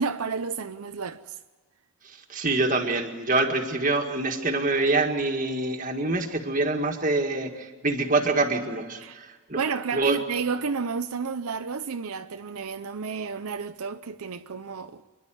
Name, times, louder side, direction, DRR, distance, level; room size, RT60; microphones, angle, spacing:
voice 1, 0.0-1.4 9.0-9.2 9.6-15.0, right 5 dB, 85° right, 0.7 m, -31 dB
voice 2, 2.1-9.6 9.9-10.2, right 2 dB, 35° right, 1.8 m, -25 dB
27.5 x 11.0 x 9.1 m
head